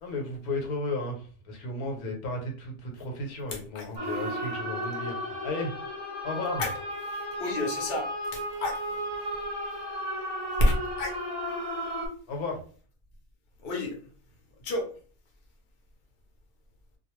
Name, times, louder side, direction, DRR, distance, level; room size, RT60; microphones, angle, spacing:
voice 1, 0.0-5.7 6.2-6.6 12.3-12.6, left 2 dB, 80° left, 2 dB, 1.2 m, -34 dB
voice 2, 3.5-4.4 6.6-9.1 9.4-9.8 10.5-11.2 13.6-14.1 14.6-14.9, left 1 dB, 45° left, 1 dB, 0.8 m, -31 dB
sound 1, 4.0-12.1, equal, 30° right, 0.5 m, -34 dB
2.4 x 2.3 x 3.0 m, 0.41 s
omnidirectional pair, 1.5 m